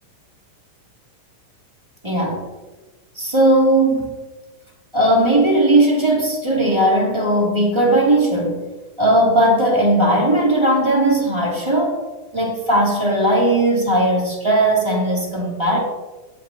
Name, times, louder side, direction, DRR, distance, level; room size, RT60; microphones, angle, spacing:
voice 1, 2.0-2.4 3.1-4.1 4.9-8.6 9.0-12.0 12.3-15.8, right 1 dB, 10° right, -4 dB, 2.5 m, -17 dB
16.5 x 10.5 x 3.0 m, 1.2 s
omnidirectional pair, 3.9 m